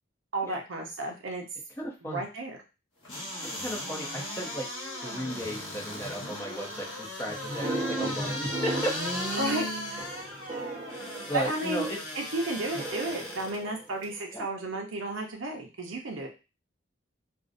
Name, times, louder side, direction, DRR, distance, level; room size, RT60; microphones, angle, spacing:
voice 1, 0.3-1.4 2.0-2.6 9.3-9.7 11.3-16.3, right 2 dB, 75° right, 2 dB, 0.6 m, -33 dB
voice 2, 1.8-2.2 3.6-4.7 5.0-9.0 11.0-12.0 14.3-14.4, equal, 10° left, -2 dB, 0.5 m, -35 dB
sound 1, 3.0-13.6 14.0-14.1, left 1 dB, 70° left, 1.1 m, -36 dB
sound 2, 7.5-12.0 12.8-14.3, right 2 dB, 25° right, 0.8 m, -37 dB
2.6 x 2.0 x 2.5 m, 0.29 s
head